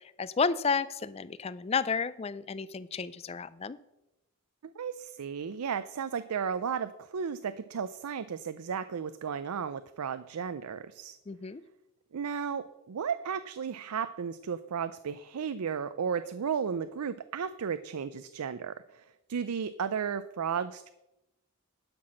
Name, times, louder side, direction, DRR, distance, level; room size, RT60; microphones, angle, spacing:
voice 1, 0.0-3.8 11.3-11.6, left 5 dB, 25° left, 17 dB, 0.3 m, -31 dB
voice 2, 4.6-11.2 12.1-20.9, right 7 dB, 90° right, 12 dB, 0.5 m, -34 dB
11.5 x 6.1 x 6.3 m, 0.94 s
head